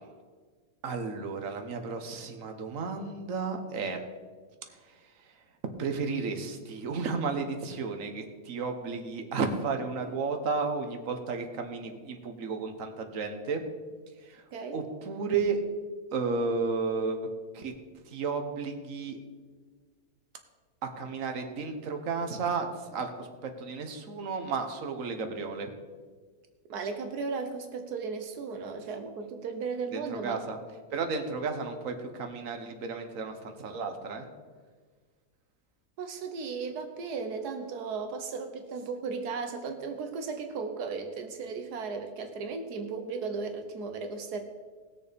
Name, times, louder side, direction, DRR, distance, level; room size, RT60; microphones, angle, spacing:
voice 1, 0.8-4.0 4.7-4.8 5.2-5.3 5.8-13.6 14.2-14.4 14.7-15.6 16.1-17.2 17.5-17.7 18.1-19.2 20.8-25.7 29.9-30.6 30.9-34.3, right 4 dB, 60° right, 5 dB, 1.5 m, -33 dB
voice 2, 26.7-30.4 36.0-44.4, right 4 dB, 80° right, 6 dB, 1.4 m, -35 dB
18.5 x 6.8 x 5.1 m, 1.5 s
omnidirectional pair, 1.7 m